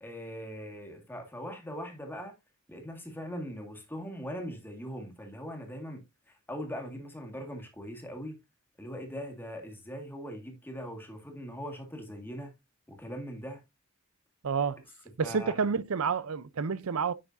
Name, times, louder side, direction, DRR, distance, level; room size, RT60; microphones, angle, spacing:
voice 1, 0.0-2.3 2.7-6.0 6.5-8.4 8.8-12.5 12.9-13.6 15.2-15.6, equal, 10° left, 1.7 m, -40 dB
voice 2, 14.4-14.8 15.2-17.1, right 5 dB, 85° right, 0.6 m, -29 dB
9.4 x 6.0 x 2.6 m
head